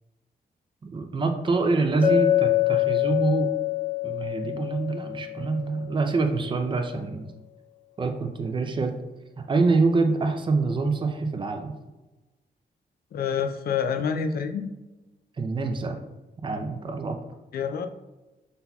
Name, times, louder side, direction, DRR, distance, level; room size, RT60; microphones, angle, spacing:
voice 1, 0.8-3.5 4.0-7.3 8.0-8.9 9.5-11.7 15.4-16.0 16.4-17.2, right 3 dB, 30° right, 5 dB, 0.5 m, -25 dB
Chink clink, 2.0-6.0, left 15 dB, 50° left, 1.0 m, -25 dB
voice 2, 13.1-14.7 17.5-17.9, left 6 dB, 65° left, 7 dB, 0.4 m, -27 dB
5.5 x 4.0 x 2.3 m, 1.1 s
wide cardioid pair, 160°, 17 cm